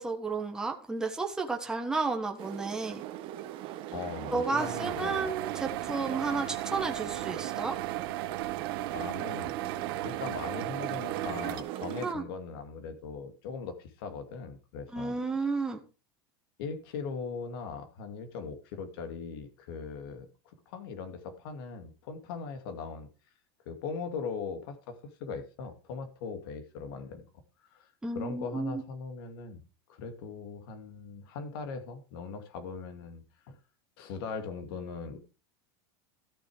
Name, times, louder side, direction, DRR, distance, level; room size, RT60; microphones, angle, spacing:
voice 1, 0.0-3.0 4.3-7.8 12.0-12.2 14.9-15.8 28.0-28.8, right 3 dB, 5° right, 3 dB, 1.3 m, -32 dB
sound 1, 2.4-12.1, right 12 dB, 40° right, 1.1 m, -39 dB
voice 2, 3.9-5.3 8.9-15.1 16.6-23.1 23.7-27.2 27.7-29.6 29.9-33.6 34.0-35.2, left 5 dB, 70° left, 8 dB, 2.5 m, -40 dB
sound 2, 4.6-11.6, right 16 dB, 70° right, 0.9 m, -36 dB
13.5 x 6.7 x 4.9 m, 0.33 s
supercardioid pair, 160°, 13 cm